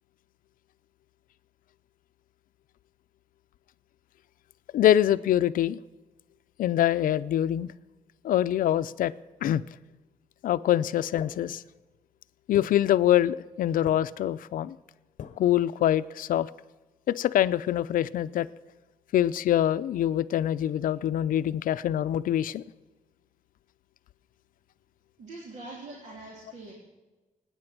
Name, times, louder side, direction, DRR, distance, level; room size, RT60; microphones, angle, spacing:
voice 1, 4.7-5.8 6.6-7.7 8.2-9.1 9.4-9.6 10.4-11.6 12.5-14.8 15.4-16.5 17.1-18.5 19.1-22.6, left 11 dB, 85° left, 14 dB, 0.5 m, -24 dB
sound 1, 11.2-12.0 12.5-13.6 13.9-14.4 15.2-15.7, left 8 dB, 60° left, 0.8 m, -46 dB
voice 2, 25.2-26.7, right 2 dB, 60° right, -2 dB, 3.3 m, -43 dB
25.0 x 9.7 x 6.0 m, 1.2 s
wide cardioid pair, 165°, 14 cm